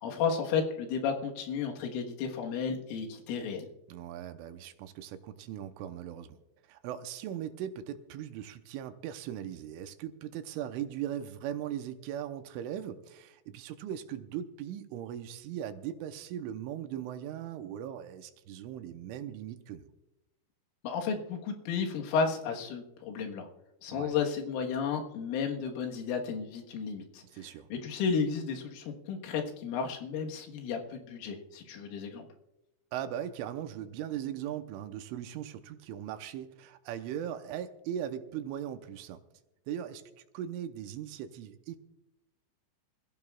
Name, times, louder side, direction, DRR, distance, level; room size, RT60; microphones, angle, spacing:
voice 1, 0.0-3.7 20.8-23.5 23.8-32.3, left 6 dB, 90° left, 2 dB, 4.0 m, -33 dB
voice 2, 3.9-19.9 23.9-24.2 27.2-27.7 32.9-39.2 39.7-41.8, right 10 dB, 85° right, 8 dB, 3.2 m, -39 dB
25.5 x 15.5 x 2.4 m, 0.94 s
omnidirectional pair, 5.6 m